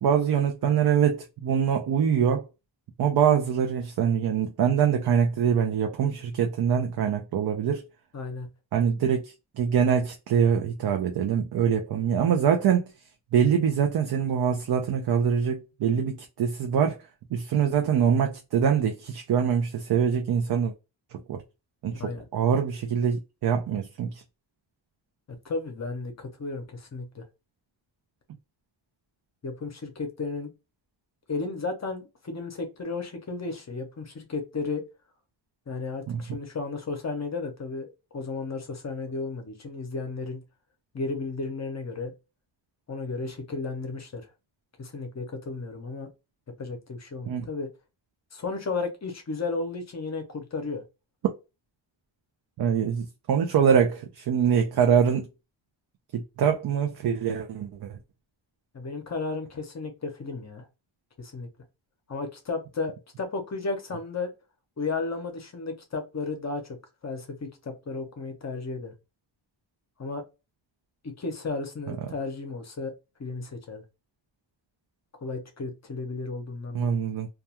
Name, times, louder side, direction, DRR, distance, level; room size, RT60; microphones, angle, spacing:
voice 1, 0.0-2.4 3.0-7.9 8.7-9.2 9.6-12.9 13.3-17.0 17.3-20.7 21.3-21.4 21.8-23.2 23.4-24.2 36.1-36.2 47.3-47.4 52.6-55.3 56.1-58.0 71.9-72.0 76.7-77.3, right 7 dB, 55° right, 0.5 m, -24 dB
voice 2, 8.1-8.5 22.0-22.2 25.3-27.2 29.4-30.5 31.3-34.8 35.7-37.9 38.1-40.4 40.9-42.1 42.9-44.2 44.8-46.1 46.6-47.7 48.3-50.8 58.7-60.7 61.2-61.5 62.1-64.3 64.8-66.8 67.0-68.9 70.0-70.2 71.0-72.9 73.2-73.8 75.2-77.0, left 3 dB, 35° left, 0.6 m, -33 dB
2.3 x 2.2 x 2.8 m
wide cardioid pair, 145°, 46 cm